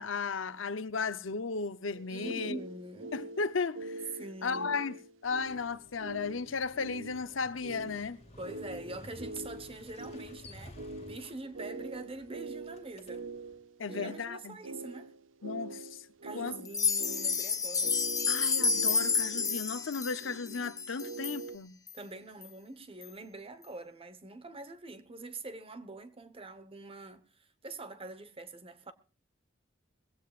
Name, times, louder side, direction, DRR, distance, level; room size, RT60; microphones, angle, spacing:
voice 1, 0.0-2.6 3.1-3.9 4.4-8.2 13.8-14.6 15.4-16.0 16.3-16.6 18.3-21.8, left 5 dB, 75° left, 0.8 m, -35 dB
sound 1, 1.9-21.6, right 3 dB, 70° right, 0.8 m, -44 dB
voice 2, 2.1-3.2 4.2-4.9 8.4-13.2 13.9-15.1 16.2-18.0 21.9-28.9, right 2 dB, 30° right, 1.1 m, -45 dB
Motorcycle, 5.2-13.6, left 1 dB, 35° left, 2.1 m, -54 dB
sound 2, 16.6-21.4 21.9-22.0 22.4-22.5 23.0-23.1, left 5 dB, 20° left, 0.9 m, -30 dB
21.5 x 16.0 x 2.5 m
head